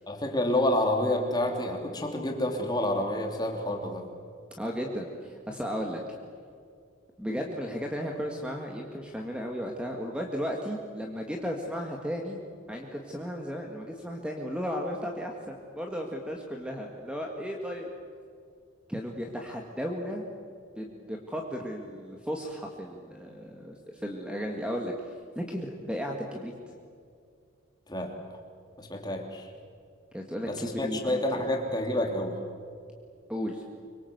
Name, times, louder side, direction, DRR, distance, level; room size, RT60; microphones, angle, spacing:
voice 1, 0.1-4.1 27.9-28.1 28.8-29.5 30.5-32.4, left 1 dB, 20° left, 2 dB, 3.0 m, -28 dB
voice 2, 4.6-6.0 7.2-12.4 12.7-17.9 18.9-20.2 20.8-26.5 30.1-31.2 33.3-33.6, equal, 5° right, 1 dB, 1.7 m, -35 dB
25.5 x 23.5 x 8.0 m, 2.3 s
head